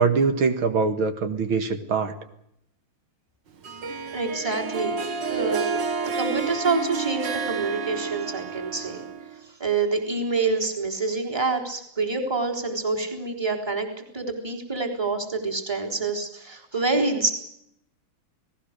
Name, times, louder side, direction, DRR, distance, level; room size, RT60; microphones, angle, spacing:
voice 1, 0.0-2.2, right 5 dB, 75° right, 8 dB, 2.6 m, -23 dB
Harp, 3.6-9.4, right 5 dB, 60° right, 2.3 m, -30 dB
voice 2, 4.1-5.0 5.3-5.7 6.1-9.0 9.6-17.3, right 3 dB, 10° right, 1 dB, 3.7 m, -27 dB
29.0 x 19.0 x 6.7 m, 0.77 s
omnidirectional pair, 2.3 m